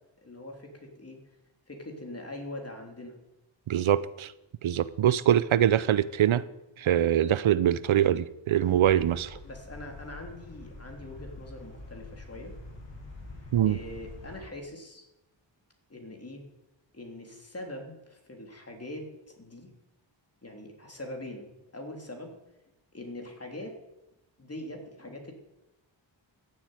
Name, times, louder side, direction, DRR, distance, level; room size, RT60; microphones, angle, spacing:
voice 1, 0.2-1.2 1.7-3.2 9.4-12.5 13.6-15.0 15.9-16.4 16.9-19.7 20.4-22.4 22.9-23.8 24.4-25.3, left 1 dB, 30° left, 3.3 m, -42 dB
voice 2, 3.7-4.3 4.6-6.4 6.8-9.4 13.5-13.8, right 10 dB, 85° right, 0.7 m, -23 dB
sound 1, 8.6-14.4, left 2 dB, 65° left, 4.5 m, -46 dB
14.5 x 7.8 x 9.2 m
wide cardioid pair, 90°, 46 cm